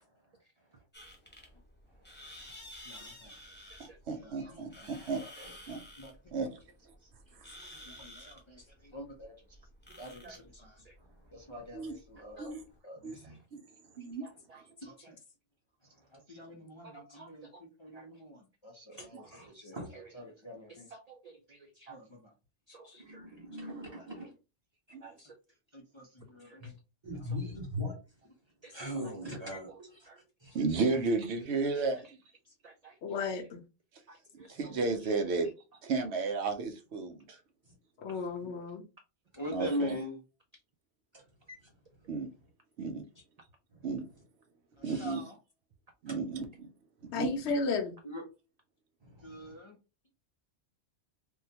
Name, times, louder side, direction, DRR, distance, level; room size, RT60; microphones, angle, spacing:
sound 1, 0.9-12.7, left 1 dB, 10° left, 0.8 m, -52 dB
voice 1, 2.9-3.3 4.1-5.2 5.7-6.1 8.0-8.6 8.9-9.3 10.0-10.7 11.3-12.5 12.8-13.1 14.8-14.9 16.3-17.5 17.8-19.2 19.5-19.8 20.2-20.9 21.9-22.0 25.7-26.7 39.4-40.2 44.8-45.3 48.0-48.2 49.2-49.7, equal, 35° left, 0 dB, 0.5 m, -43 dB
voice 2, 3.8-5.2 5.7-5.8 6.3-6.5 11.7-12.0 12.4-12.6 13.0-13.2 13.5-13.6 14.0-14.3 24.9-25.1 30.5-32.2 34.5-35.5 35.8-37.4 39.5-40.0 42.1-42.3 42.8-43.0 43.8-44.0 44.8-45.2 46.0-46.7 47.1-47.3, right 4 dB, 75° right, 7 dB, 0.9 m, -33 dB
voice 3, 10.2-11.0 12.4-12.5 13.1-13.4 14.2-15.1 16.8-17.5 17.9-18.1 18.9-20.1 20.7-22.0 22.7-24.1 25.0-25.4 26.4-26.7 27.2-27.4 28.6-29.2 29.7-29.8 30.1-30.2 31.7-31.8 32.4-33.0 33.3-33.4 34.1-34.7 35.0-35.1, right 3 dB, 55° right, 3 dB, 0.4 m, -54 dB
voice 4, 13.0-13.4 19.7-19.9 23.0-24.3 26.6-26.7 27.0-27.9 28.7-30.1 30.4-30.6 41.1-41.2 41.5-41.6 43.7-43.9 44.8-45.1 46.1-46.2 47.0-47.1 49.0-49.5, left 1 dB, 25° right, -1 dB, 1.1 m, -41 dB
voice 5, 33.0-33.6 38.0-38.8 47.1-47.9, left 4 dB, 75° left, 7 dB, 0.9 m, -33 dB
3.6 x 2.2 x 2.7 m, 0.30 s
omnidirectional pair, 1.2 m